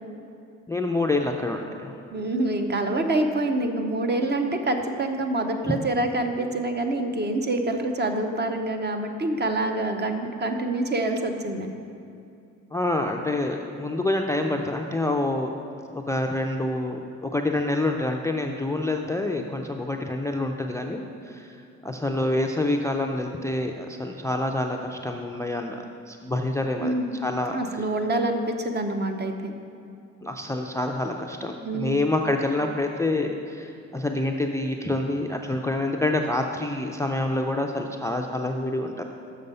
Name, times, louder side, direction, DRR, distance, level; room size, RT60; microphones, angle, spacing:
voice 1, 0.7-2.0 5.7-5.8 12.7-21.6 21.8-27.6 30.2-39.0, left 2 dB, 10° left, 3 dB, 0.4 m, -27 dB
voice 2, 2.1-11.7 26.8-27.2 27.5-29.5 31.6-32.0, right 2 dB, 35° right, 5 dB, 0.8 m, -26 dB
6.6 x 6.3 x 5.4 m, 2.6 s
cardioid pair, 90°, 30 cm